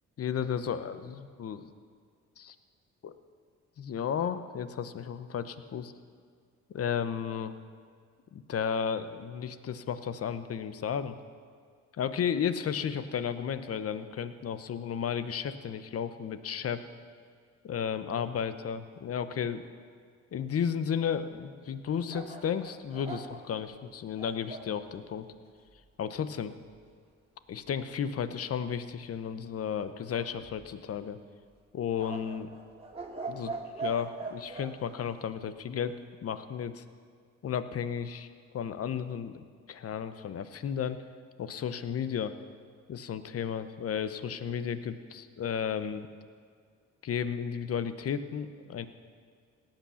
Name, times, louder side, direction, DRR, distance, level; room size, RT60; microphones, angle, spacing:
voice 1, 0.2-1.7 2.4-2.5 3.0-3.1 3.8-5.9 6.7-7.5 8.3-11.1 12.0-16.8 17.6-19.6 20.3-25.3 26.0-26.5 27.5-31.2 31.7-32.5 33.3-33.5 33.8-36.8 37.4-38.3 38.5-41.0 41.4-42.3 42.9-46.1 47.0-48.9, left 8 dB, 50° left, 12 dB, 0.9 m, -33 dB
sound 1, 22.1-24.7 30.1-31.0 32.0-34.7, right 4 dB, 20° right, 2.3 m, -41 dB
17.5 x 9.0 x 7.0 m, 2.1 s
cardioid pair, 90°, 30 cm